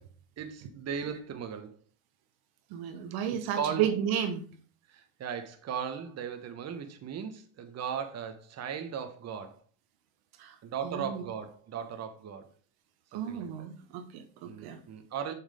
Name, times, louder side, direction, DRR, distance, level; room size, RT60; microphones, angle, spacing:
voice 1, 0.4-1.8 3.3-3.9 4.9-9.6 10.6-12.5 13.1-13.7 14.4-15.3, right 7 dB, 35° right, 1.3 m, -37 dB
voice 2, 2.7-4.5 10.4-10.6 10.8-11.2 13.1-14.8, right 9 dB, 55° right, 1.3 m, -33 dB
7.3 x 6.3 x 3.7 m
hypercardioid pair, 90°, 44 cm